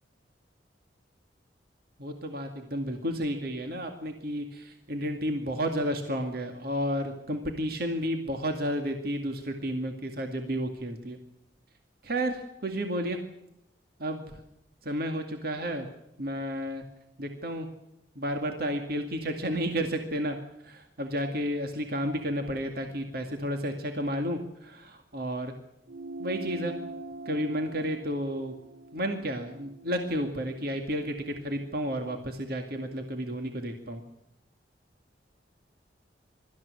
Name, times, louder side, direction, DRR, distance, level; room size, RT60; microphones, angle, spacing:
voice 1, 2.0-11.2 12.0-13.2 14.0-14.4 14.8-15.9 16.2-16.8 17.2-17.7 18.2-20.4 20.6-25.5 26.2-26.7 27.3-28.5 28.9-34.0, equal, 55° right, 4 dB, 2.2 m, -32 dB
sound 1, 25.9-30.7, right 2 dB, 75° right, 3.8 m, -43 dB
23.5 x 14.0 x 9.7 m, 0.86 s
head